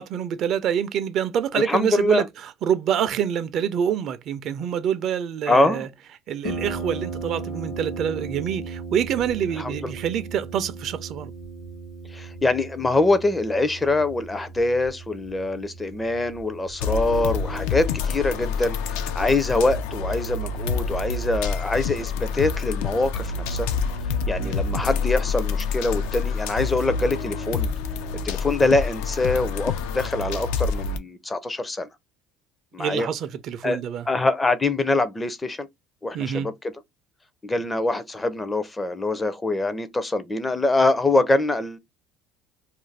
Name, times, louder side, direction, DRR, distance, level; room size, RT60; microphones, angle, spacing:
voice 1, 0.0-5.9 6.3-11.3 24.4-24.6 32.8-34.1 36.1-36.5, right 9 dB, 55° right, 0.4 m, -26 dB
voice 2, 1.5-2.2 5.5-5.9 9.6-9.9 12.1-23.7 24.3-27.7 28.2-31.9 32.7-33.1 33.6-33.8 34.1-35.7 36.0-36.7 37.4-41.8, left 2 dB, 15° left, 0.4 m, -24 dB
Harp, 6.4-23.9, right 3 dB, 60° left, 0.9 m, -38 dB
sound 1, 16.8-31.0, left 5 dB, 80° left, 0.4 m, -27 dB
2.5 x 2.2 x 3.2 m
supercardioid pair, 105°, 0 cm